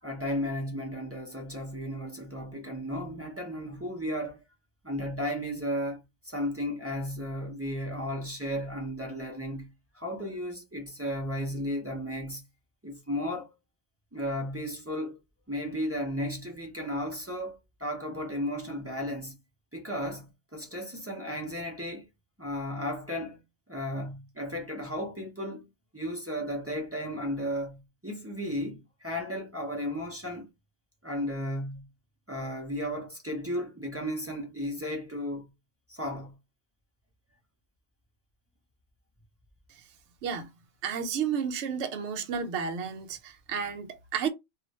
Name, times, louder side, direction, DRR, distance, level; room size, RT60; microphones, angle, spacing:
voice 1, 0.0-4.4 4.8-9.7 9.9-12.4 12.8-13.6 14.1-15.2 15.5-19.3 19.7-22.0 22.4-23.4 23.7-25.7 25.9-30.5 31.0-31.9 32.3-35.5 35.9-36.3, equal, 15° right, 0.5 m, -34 dB
voice 2, 40.8-44.3, right 7 dB, 65° right, 0.9 m, -32 dB
2.4 x 2.3 x 4.0 m
omnidirectional pair, 1.4 m